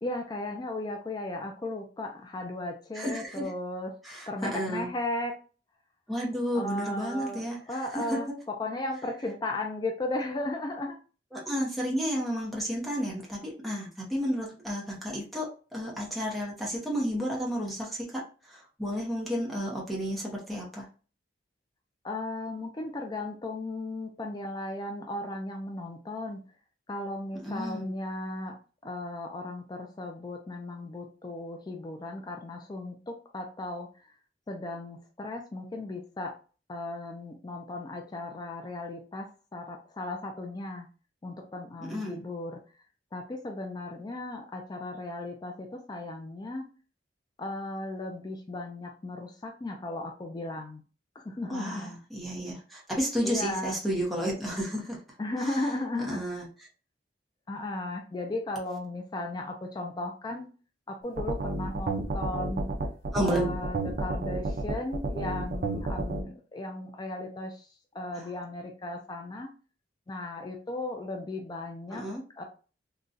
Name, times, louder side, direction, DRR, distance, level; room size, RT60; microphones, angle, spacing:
voice 1, 0.0-3.9 4.3-5.3 6.5-11.0 22.0-26.4 26.9-28.5 28.8-33.9 34.5-36.3 36.7-40.9 41.2-42.6 43.1-46.7 47.4-50.8 51.2-51.9 53.2-53.8 55.2-56.2 57.5-60.5 60.9-62.7 63.2-69.5 70.1-72.0 72.4-72.5, left 2 dB, 25° left, 3 dB, 0.4 m, -36 dB
voice 2, 2.9-3.5 4.0-4.9 6.1-8.3 11.3-20.9 27.4-27.9 41.8-42.2 51.4-55.0 55.4-55.7 56.1-56.5 63.1-63.5 68.1-68.3 71.9-72.2, equal, ahead, -4 dB, 0.7 m, -32 dB
sound 1, 61.2-66.2, right 2 dB, 55° right, 0.5 m, -31 dB
3.8 x 2.2 x 2.5 m, 0.36 s
head